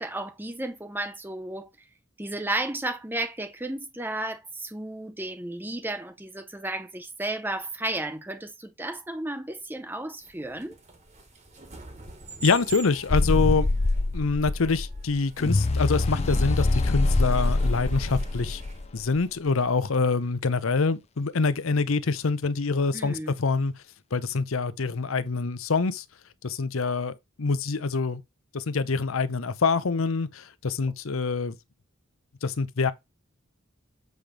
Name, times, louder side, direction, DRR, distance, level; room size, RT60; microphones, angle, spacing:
voice 1, 0.0-1.7 2.2-10.8 22.9-23.4, right 1 dB, 10° right, 0.7 m, -33 dB
sound 1, 10.3-18.9, right 1 dB, 35° right, 1.4 m, -41 dB
voice 2, 12.4-13.7 14.1-18.6 18.9-23.7 24.1-26.0 26.4-28.2 28.5-31.5 32.4-32.9, left 4 dB, 75° left, 0.7 m, -25 dB
sound 2, 13.1-19.2, left 2 dB, 30° left, 0.5 m, -25 dB
8.0 x 3.4 x 5.1 m
head